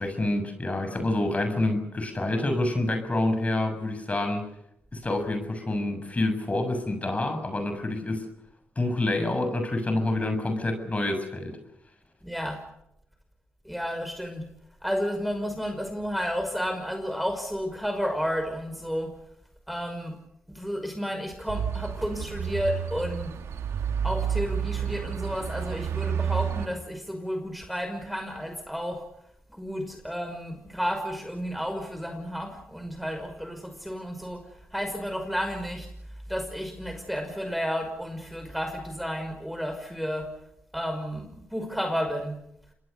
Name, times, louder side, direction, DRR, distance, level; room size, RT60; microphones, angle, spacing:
voice 1, 0.0-4.5 4.9-8.3 8.8-11.6, left 2 dB, 30° left, 7 dB, 7.1 m, -27 dB
voice 2, 12.2-12.6 13.6-14.5 14.8-19.1 19.7-20.2 20.5-23.3 24.0-29.1 29.5-34.4 34.7-35.9 36.3-40.3 40.7-42.4, equal, ahead, 6 dB, 5.6 m, -32 dB
sound 1, 21.5-26.7, right 8 dB, 80° right, 2.3 m, -30 dB
28.0 x 21.0 x 6.8 m, 0.77 s
supercardioid pair, 55°, 5 cm